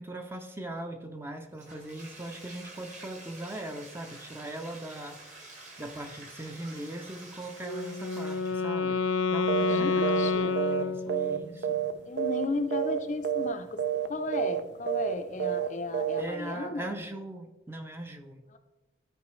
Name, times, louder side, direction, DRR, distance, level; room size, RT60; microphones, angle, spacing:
voice 1, 0.0-5.2 5.4-9.0 9.3-11.8 16.2-18.4, right 1 dB, 10° right, 4 dB, 0.6 m, -40 dB
Bathtub (filling or washing), 1.5-8.8, right 2 dB, 40° right, 1.7 m, -49 dB
Wind instrument woodwind instrument, 7.6-11.6, left 4 dB, 90° left, 0.5 m, -29 dB
sound 1, 9.5-9.8 10.0-10.3 10.6-11.9 12.2-12.5 12.7-13.0 13.2-13.5 13.8-14.1 14.3-14.6 14.9-15.1 15.4-15.7 15.9-16.2, right 9 dB, 60° right, 0.4 m, -29 dB
voice 2, 9.7-10.5 12.1-16.9 18.5-18.6, left 3 dB, 40° left, 7 dB, 0.5 m, -34 dB
12.5 x 4.7 x 3.1 m, 1.1 s
head